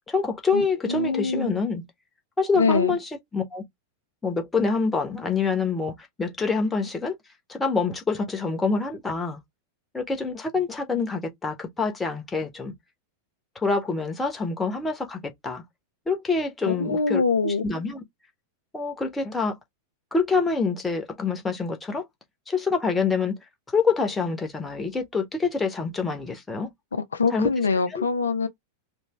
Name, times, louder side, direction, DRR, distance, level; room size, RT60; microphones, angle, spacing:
voice 1, 0.1-1.8 2.4-3.6 4.2-7.1 7.5-9.4 9.9-12.7 13.5-15.6 16.1-18.0 18.7-19.6 20.1-22.0 22.5-23.3 23.7-26.7 27.3-27.5 27.9-28.0, left 4 dB, 10° left, 1.1 m, -26 dB
voice 2, 0.9-1.5 2.6-2.9 16.7-17.6 26.9-28.5, left 4 dB, 70° left, 0.5 m, -24 dB
3.3 x 3.2 x 3.0 m
figure-of-eight pair, 90°, 0 cm